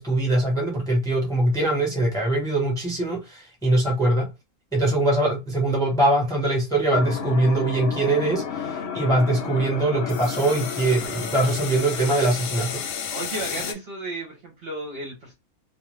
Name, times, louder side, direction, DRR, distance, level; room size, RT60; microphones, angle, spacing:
voice 1, 0.0-4.3 4.7-12.8, right 2 dB, 5° left, 0.7 m, -22 dB
sound 1, 6.9-13.7, left 7 dB, 65° left, 0.8 m, -31 dB
voice 2, 13.1-15.3, right 2 dB, 50° right, 0.8 m, -33 dB
2.4 x 2.4 x 3.1 m
omnidirectional pair, 1.6 m